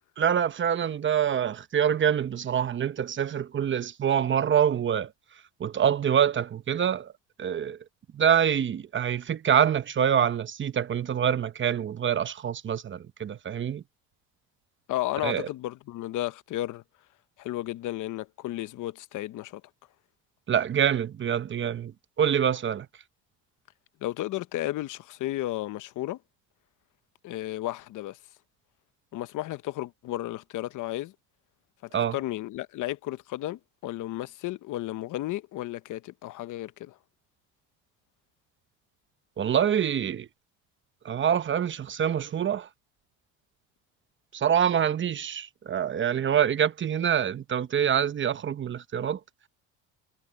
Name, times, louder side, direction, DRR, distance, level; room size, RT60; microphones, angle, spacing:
voice 1, 0.2-5.1 5.6-7.1 7.4-7.8 8.1-13.8 15.2-15.5 20.5-21.9 22.2-22.9 31.9-32.2 39.4-40.3 41.0-42.7 44.3-49.2, right 8 dB, 35° right, 1.0 m, -25 dB
voice 2, 14.9-16.8 17.4-19.6 24.0-26.2 27.2-28.2 29.1-31.1 32.1-37.0, left 15 dB, 60° left, 1.0 m, -33 dB
supercardioid pair, 100°, 34 cm